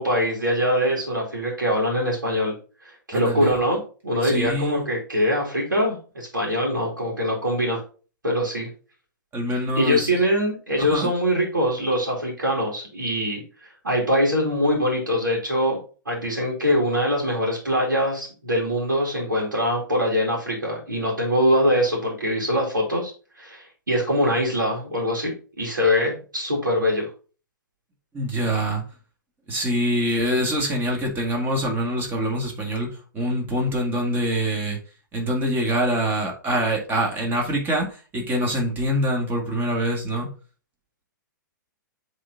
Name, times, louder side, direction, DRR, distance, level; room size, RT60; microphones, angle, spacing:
voice 1, 0.0-2.5 2.8-7.8 8.2-8.7 9.8-15.8 16.1-23.1 23.4-27.1, equal, 70° right, -4 dB, 2.4 m, -23 dB
voice 2, 3.1-3.5 4.2-4.8 9.3-10.1 10.8-11.1 28.1-28.8 29.5-34.8 35.1-40.3, equal, 20° right, 1 dB, 2.0 m, -25 dB
7.5 x 3.7 x 4.0 m, 0.37 s
figure-of-eight pair, 110°, 11 cm